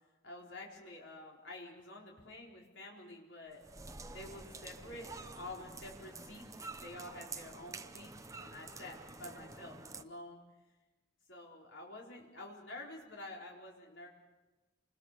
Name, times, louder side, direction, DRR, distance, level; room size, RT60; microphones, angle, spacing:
voice 1, 0.2-3.6 4.1-10.4 11.3-14.1, left 2 dB, 75° left, -2 dB, 4.2 m, -49 dB
sound 1, 3.5-10.0, right 3 dB, 15° right, 0.8 m, -49 dB
27.5 x 21.0 x 6.7 m, 1.1 s
head